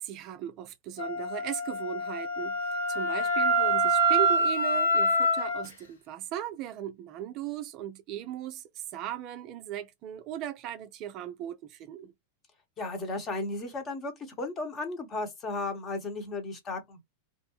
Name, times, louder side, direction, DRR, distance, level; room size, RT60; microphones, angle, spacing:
voice 1, 0.0-12.1, right 10 dB, 40° right, 0.3 m, -37 dB
Wind instrument woodwind instrument, 1.0-5.7, right 1 dB, 55° left, 0.9 m, -26 dB
voice 2, 12.8-14.1 14.4-17.0, left 2 dB, 25° left, 0.9 m, -34 dB
2.4 x 2.1 x 2.9 m
figure-of-eight pair, 90°, 0 cm